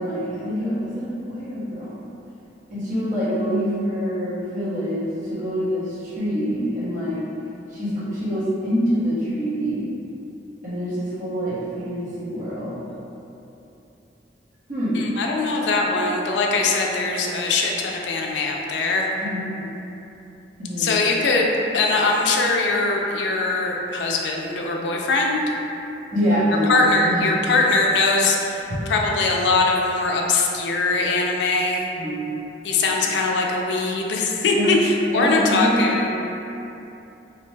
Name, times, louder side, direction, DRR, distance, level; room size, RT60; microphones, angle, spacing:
voice 1, 0.0-1.9 2.7-7.2 7.7-9.8 10.6-12.8 14.7-15.0 19.2-19.6 20.6-20.9 26.1-27.3 28.7-28.8 31.9-32.3 34.5-34.7 35.1-35.8, equal, 50° right, -11 dB, 0.9 m, -25 dB
voice 2, 14.9-19.1 20.8-25.4 26.7-31.9 32.6-36.1, left 3 dB, 70° left, 0 dB, 0.3 m, -21 dB
2.6 x 2.1 x 3.1 m, 2.9 s
head